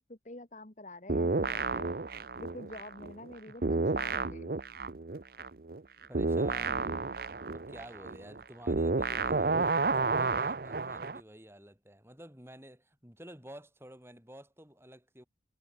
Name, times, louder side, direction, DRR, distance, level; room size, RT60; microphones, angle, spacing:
voice 1, 0.0-2.0 2.4-4.6, left 2 dB, 45° left, 1.8 m, -47 dB
sound 1, 1.1-3.3 3.6-11.2, right 3 dB, 55° right, 0.8 m, -31 dB
voice 2, 6.1-7.1 7.5-15.2, equal, 15° right, 7.5 m, -51 dB
head